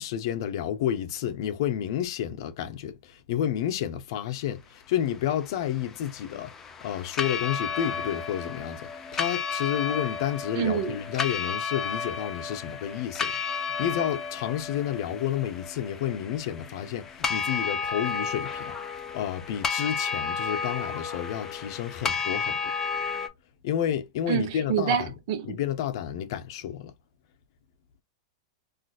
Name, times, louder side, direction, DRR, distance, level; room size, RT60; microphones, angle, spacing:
voice 1, 0.0-6.5 6.8-22.7 23.6-25.1 25.5-26.9, left 10 dB, 55° left, 0.7 m, -30 dB
sound 1, 5.3-23.3, left 5 dB, 15° left, 0.5 m, -32 dB
voice 2, 10.5-11.0 24.3-25.6, right 9 dB, 50° right, 0.7 m, -27 dB
3.8 x 2.5 x 2.3 m
supercardioid pair, 145°, 3 cm